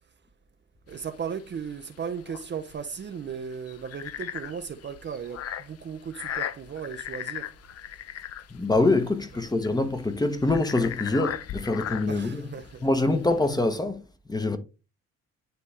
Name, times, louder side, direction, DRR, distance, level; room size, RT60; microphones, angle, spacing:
sound 1, 0.9-13.5, left 10 dB, 55° left, 0.6 m, -38 dB
voice 1, 0.9-7.5 12.1-12.9, right 7 dB, 40° right, 0.6 m, -36 dB
voice 2, 8.5-12.5 12.8-14.0 14.3-14.6, left 2 dB, 15° left, 0.9 m, -25 dB
9.6 x 3.2 x 3.3 m
cardioid pair, 90°, 30 cm